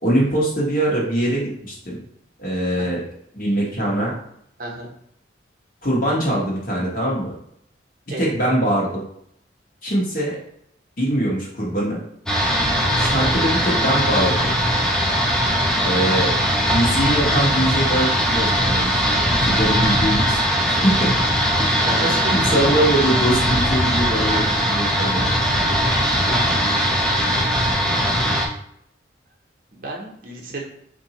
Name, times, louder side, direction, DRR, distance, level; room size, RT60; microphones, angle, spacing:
voice 1, 0.0-2.0 2.4-3.0 3.3-4.1 5.8-7.3 8.2-9.0 9.8-10.4 11.0-12.0 13.0-14.6 15.8-16.3 16.7-20.4 20.7-21.1 21.6-25.3 27.6-27.8, right 1 dB, 45° left, -4 dB, 1.1 m, -22 dB
voice 2, 4.6-4.9 8.1-8.3 21.6-22.7 26.2-26.8 29.7-30.6, right 1 dB, 45° right, -1 dB, 0.7 m, -32 dB
sound 1, 12.3-28.5, equal, 5° left, 0.4 m, -20 dB
4.0 x 2.6 x 2.9 m, 0.70 s
head